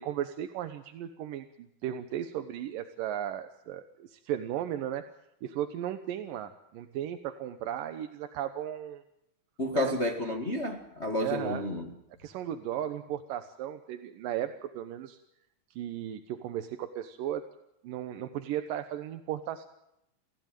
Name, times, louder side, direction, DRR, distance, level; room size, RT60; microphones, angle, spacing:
voice 1, 0.0-5.0 5.4-9.0 9.7-10.0 11.2-11.7 12.2-15.2 15.8-17.4 17.8-19.7, right 11 dB, 85° right, 2.8 m, -35 dB
voice 2, 9.6-11.8, left 1 dB, 25° left, 1.6 m, -30 dB
29.5 x 15.5 x 9.2 m
omnidirectional pair, 3.8 m